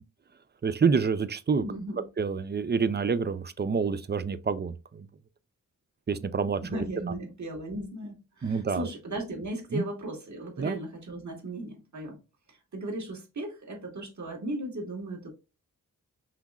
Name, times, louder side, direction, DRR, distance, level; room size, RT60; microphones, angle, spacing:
voice 1, 0.6-1.6 2.2-5.1 6.1-6.6 8.4-8.9 9.7-9.8 10.6-10.8, right 5 dB, 30° right, 0.5 m, -27 dB
voice 2, 1.6-2.0 6.6-12.2 12.5-15.3, right 1 dB, 60° right, 1.7 m, -36 dB
5.7 x 3.0 x 2.4 m
cardioid pair, 65°, 33 cm